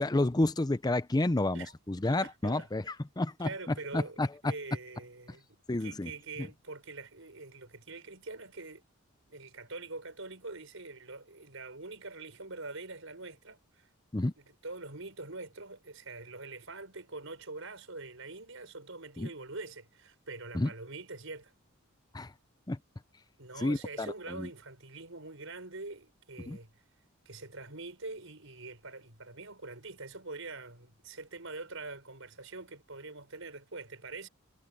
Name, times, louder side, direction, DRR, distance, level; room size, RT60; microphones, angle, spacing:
voice 1, 0.0-3.5 3.9-4.3 5.7-6.1 14.1-14.3 19.2-19.3 20.5-20.7 22.1-22.3 22.7-22.8 23.6-24.1 24.4-24.5 26.5-26.6, left 2 dB, 20° left, 0.6 m, -30 dB
voice 2, 2.1-2.7 3.4-5.5 5.8-8.8 9.3-13.9 14.4-21.5 23.4-26.7 27.2-34.3, right 3 dB, 70° right, 6.1 m, -44 dB
head